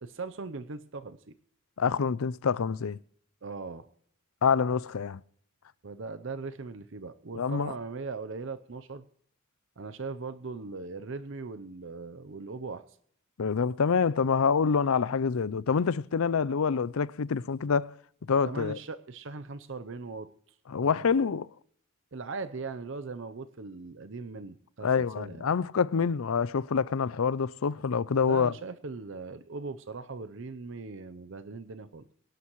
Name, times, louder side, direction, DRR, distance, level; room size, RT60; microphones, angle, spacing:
voice 1, 0.0-1.3 3.4-3.9 5.8-9.0 9.8-12.9 18.4-20.3 20.8-21.1 22.1-25.4 28.3-32.0, right 4 dB, 60° right, 0.7 m, -39 dB
voice 2, 1.8-3.0 4.4-5.2 7.3-7.7 13.4-17.9 18.3-18.8 20.7-21.5 24.8-28.5, left 6 dB, 80° left, 0.5 m, -26 dB
25.0 x 11.5 x 3.1 m
head